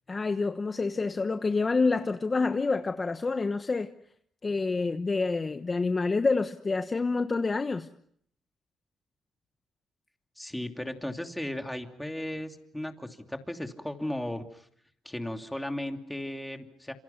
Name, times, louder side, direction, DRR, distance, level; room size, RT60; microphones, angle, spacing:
voice 1, 0.1-3.9 4.4-7.9, left 3 dB, 30° left, 1.1 m, -27 dB
voice 2, 10.4-14.6 15.0-16.9, left 1 dB, 5° left, 2.9 m, -36 dB
27.5 x 27.0 x 5.9 m
cardioid pair, 90°, 0 cm